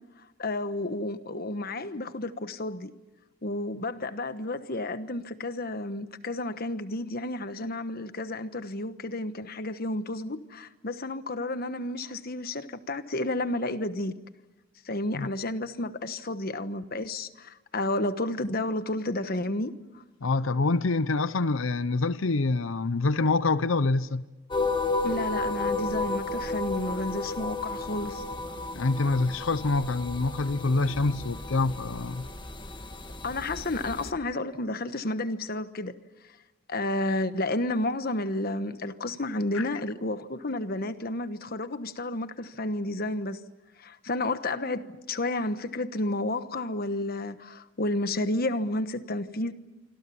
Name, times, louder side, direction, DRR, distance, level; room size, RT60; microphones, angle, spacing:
voice 1, 0.4-2.9 3.4-14.1 14.8-19.7 25.0-28.2 33.2-36.0 36.7-43.4 43.8-49.5, left 2 dB, 50° left, 1.2 m, -31 dB
voice 2, 20.2-24.2 28.7-32.3 39.5-39.6, left 3 dB, 80° left, 0.8 m, -26 dB
sound 1, 24.5-34.1, left 3 dB, 25° left, 1.5 m, -33 dB
26.5 x 26.0 x 7.1 m
head